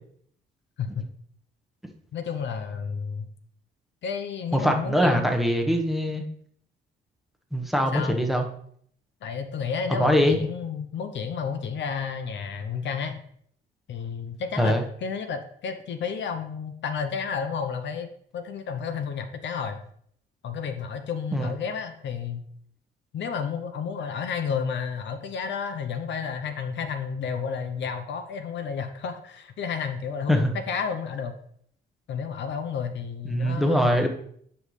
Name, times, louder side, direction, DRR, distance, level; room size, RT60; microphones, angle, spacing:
voice 1, 2.1-3.3 4.0-5.4 7.9-8.2 9.2-13.2 13.9-18.1 18.3-19.8 20.4-22.4 23.1-31.3 32.1-34.1, left 6 dB, 65° left, 8 dB, 0.8 m, -31 dB
voice 2, 4.5-6.2 7.5-8.5 10.0-10.4 14.6-14.8 21.3-21.5 30.3-30.5 33.3-34.1, equal, ahead, 3 dB, 1.2 m, -22 dB
8.8 x 5.5 x 3.2 m, 0.64 s
cardioid pair, 90°, 20 cm